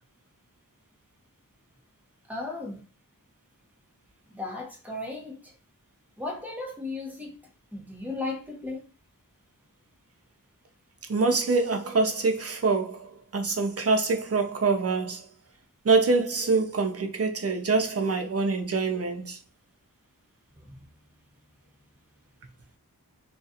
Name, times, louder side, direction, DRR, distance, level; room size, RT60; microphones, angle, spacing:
voice 1, 2.3-2.8 4.3-5.5 6.2-7.4 7.7-8.8 20.6-20.9, left 2 dB, 5° right, 0.9 m, -36 dB
voice 2, 11.1-15.3 15.8-19.4, right 3 dB, 45° right, 0.6 m, -25 dB
2.3 x 2.3 x 2.7 m
wide cardioid pair, 40°, 36 cm